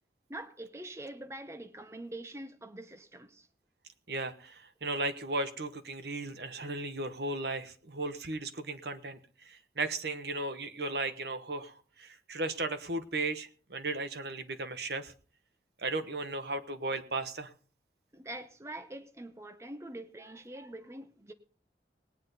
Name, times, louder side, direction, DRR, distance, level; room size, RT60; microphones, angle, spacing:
voice 1, 0.3-3.5 18.1-21.3, right 1 dB, 15° right, 0.7 m, -44 dB
voice 2, 4.1-15.1 15.8-17.5, right 2 dB, 70° right, 1.2 m, -36 dB
19.0 x 9.5 x 4.0 m
head